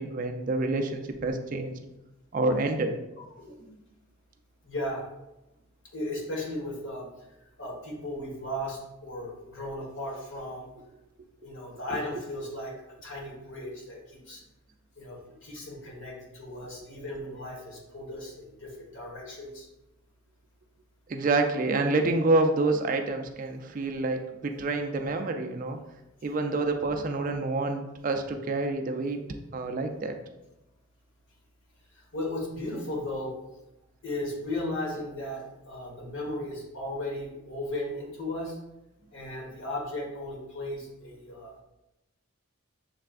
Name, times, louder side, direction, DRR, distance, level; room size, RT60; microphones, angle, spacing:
voice 1, 0.0-1.7 2.3-3.0 21.1-25.8 26.2-29.2 29.5-30.2, right 2 dB, 40° right, 5 dB, 0.3 m, -27 dB
voice 2, 3.4-3.7 4.6-5.0 5.9-7.1 7.6-10.7 11.4-12.7 13.0-14.4 15.0-19.7 31.9-33.3 34.0-38.6 39.1-41.6, left 1 dB, 65° left, -2 dB, 1.3 m, -36 dB
6.6 x 3.3 x 2.4 m, 0.95 s
head